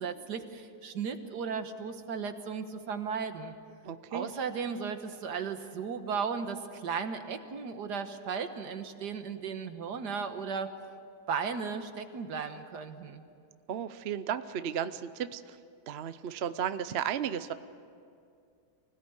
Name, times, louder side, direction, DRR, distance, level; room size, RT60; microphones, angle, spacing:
voice 1, 0.0-3.5 4.1-10.7 11.3-13.2, right 6 dB, 70° right, 8 dB, 1.8 m, -35 dB
voice 2, 3.8-4.3 13.7-15.6 15.9-17.5, right 9 dB, 55° right, 12 dB, 0.7 m, -34 dB
25.0 x 17.0 x 9.7 m, 2.4 s
omnidirectional pair, 1.8 m